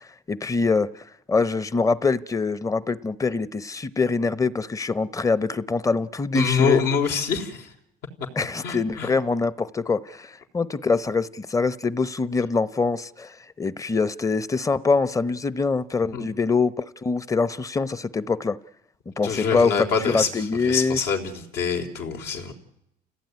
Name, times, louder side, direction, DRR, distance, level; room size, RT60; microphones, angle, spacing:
voice 1, 0.0-6.8 8.3-18.6 19.2-21.0, left 4 dB, 20° left, 0.9 m, -24 dB
voice 2, 6.3-7.7 8.6-9.1 16.1-16.2 19.2-22.5, left 6 dB, 75° left, 4.3 m, -25 dB
29.5 x 17.0 x 9.6 m
cardioid pair, 110°, 17 cm